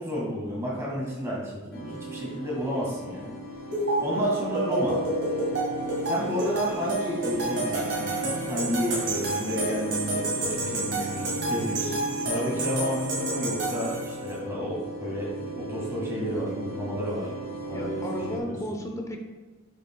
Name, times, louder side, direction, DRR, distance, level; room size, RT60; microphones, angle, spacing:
voice 1, 0.0-3.3 4.0-5.0 6.0-17.3 17.7-18.5, equal, 15° right, -5 dB, 1.8 m, -31 dB
sound 1, 1.7-18.4, right 2 dB, 50° left, 1.2 m, -36 dB
sound 2, 3.7-14.3, right 2 dB, 55° right, 1.8 m, -30 dB
voice 2, 17.7-19.2, equal, 15° left, 3 dB, 0.6 m, -34 dB
6.7 x 6.2 x 2.3 m, 1.3 s
head